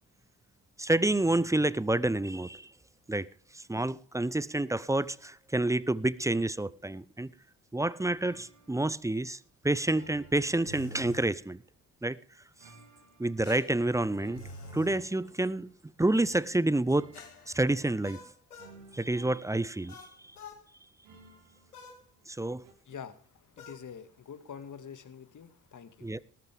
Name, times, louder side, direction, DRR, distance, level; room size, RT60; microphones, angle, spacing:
voice 1, 0.8-2.7 3.1-3.3 3.5-7.3 7.7-9.4 9.6-11.6 12.0-12.2 13.2-14.4 14.7-15.7 16.0-17.1 17.5-18.2 18.9-20.1 22.3-22.6 26.0-26.2, right 2 dB, 5° right, 0.6 m, -28 dB
sound 1, 8.2-9.0 9.9-11.7 12.6-13.6 14.2-15.9 16.9-18.1 18.6-20.4 21.0-22.3 22.6-22.7, right 4 dB, 70° right, 3.1 m, -56 dB
sound 2, 10.7-11.3 13.4-15.0 17.1-18.8 19.9-20.6 21.7-22.0 23.6-23.8, left 2 dB, 90° left, 1.8 m, -47 dB
voice 2, 22.9-26.2, left 7 dB, 40° left, 2.1 m, -46 dB
19.0 x 13.5 x 3.6 m
figure-of-eight pair, 45°, 45 cm